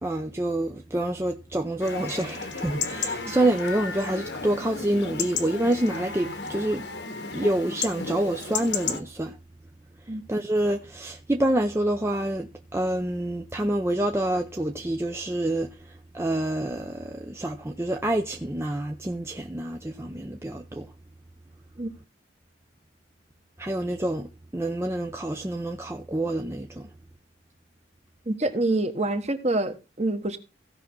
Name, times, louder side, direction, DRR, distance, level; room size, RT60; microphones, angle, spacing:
voice 1, 0.0-6.8 7.3-9.4 10.3-20.9 23.6-26.9, right 1 dB, 15° right, 0.6 m, -27 dB
Chatter / Livestock farm animals working animals / Chirp tweet, 1.8-9.0, left 5 dB, 70° left, 1.4 m, -33 dB
voice 2, 28.3-30.4, right 2 dB, 35° right, 1.4 m, -26 dB
16.0 x 5.8 x 3.8 m
head